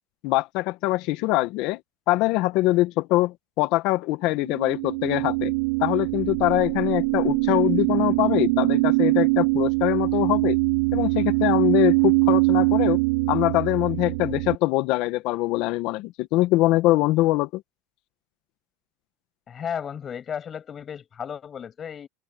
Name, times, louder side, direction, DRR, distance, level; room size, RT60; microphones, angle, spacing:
voice 1, 0.2-1.8 2.1-5.5 5.8-10.6 10.9-13.0 13.3-17.6, left 18 dB, 55° left, 1.7 m, -23 dB
sound 1, 4.4-14.6, right 28 dB, 75° right, 2.8 m, -23 dB
voice 2, 19.5-22.1, left 8 dB, 25° left, 7.9 m, -34 dB
supercardioid pair, 135°, 0 cm